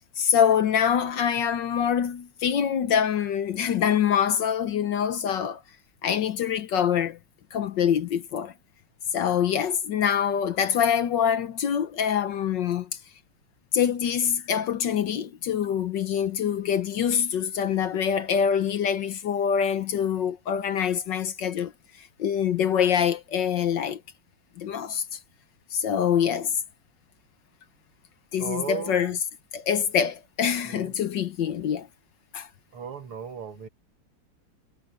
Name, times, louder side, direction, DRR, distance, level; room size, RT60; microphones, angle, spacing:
voice 1, 0.2-5.6 6.0-7.2 7.5-8.5 9.1-12.9 13.7-21.7 22.2-24.0 24.6-25.2 25.7-26.6 28.3-29.2 29.5-31.9 32.3-32.5, left 8 dB, 65° left, 1.4 m, -25 dB
voice 2, 28.4-29.2 30.6-30.9 32.7-33.7, right 6 dB, 75° right, 3.0 m, -36 dB
omnidirectional pair, 2.4 m